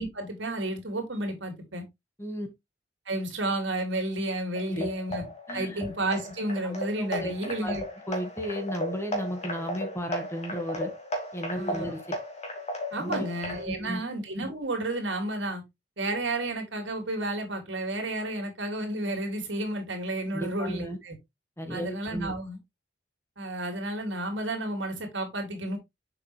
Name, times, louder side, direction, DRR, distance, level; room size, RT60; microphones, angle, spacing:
voice 1, 0.0-1.8 3.1-5.2 5.5-7.8 11.6-11.9 12.9-15.6 16.0-21.2 21.7-22.6 23.4-25.8, right 1 dB, 75° right, 2.9 m, -31 dB
sound 1, 4.6-13.6, equal, 40° left, 2.4 m, -35 dB
voice 2, 5.5-5.8 6.6-7.3 7.6-7.8 8.1-10.9 11.3-12.2 13.0-13.3 13.6-14.0 20.3-21.0 21.6-22.3, equal, 15° left, 1.7 m, -34 dB
7.1 x 5.7 x 3.3 m
head